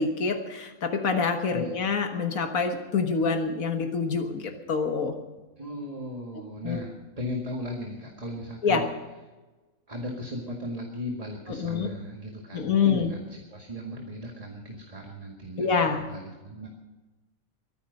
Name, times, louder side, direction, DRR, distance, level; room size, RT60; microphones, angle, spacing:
voice 1, 0.0-5.2 6.6-6.8 8.6-8.8 11.5-11.9 12.5-13.1 15.6-16.1, left 5 dB, 85° left, 5 dB, 1.8 m, -26 dB
voice 2, 5.6-8.9 9.9-16.7, left 1 dB, 25° right, 1 dB, 1.9 m, -37 dB
22.5 x 10.5 x 5.3 m, 1.2 s
omnidirectional pair, 1.4 m